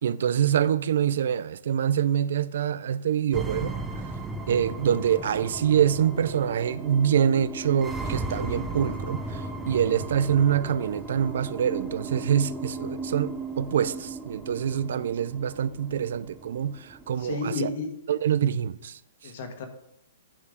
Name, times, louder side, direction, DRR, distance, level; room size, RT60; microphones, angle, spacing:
voice 1, 0.0-3.8 4.5-17.7 18.1-19.3, right 9 dB, 65° right, 0.4 m, -25 dB
sound 1, 3.3-17.3, right 2 dB, 5° right, 0.6 m, -36 dB
voice 2, 17.2-17.9 19.2-19.7, left 4 dB, 50° left, 1.5 m, -32 dB
10.0 x 4.6 x 5.1 m
hypercardioid pair, 165°, 0 cm